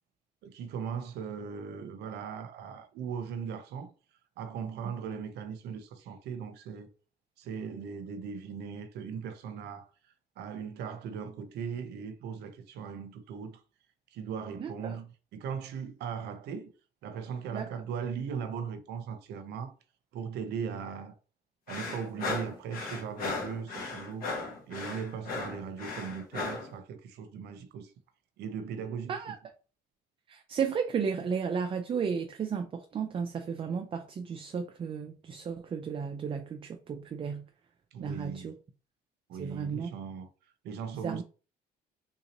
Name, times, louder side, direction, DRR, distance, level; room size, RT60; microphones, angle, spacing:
voice 1, 0.4-3.9 4.4-6.9 7.4-9.9 10.4-13.6 14.1-16.7 17.0-19.7 20.1-21.1 21.7-24.3 24.7-27.9 28.4-29.2 37.9-38.5 39.3-40.3 40.6-41.2, right 6 dB, 80° right, 0.7 m, -38 dB
voice 2, 14.6-15.0 17.5-17.7 29.1-29.4 30.3-37.4 38.0-38.5 39.4-39.9 41.0-41.2, right 6 dB, 30° right, 0.4 m, -33 dB
sound 1, 21.7-26.7, left 3 dB, 60° left, 1.4 m, -36 dB
3.6 x 2.8 x 2.9 m
cardioid pair, 110°, 17 cm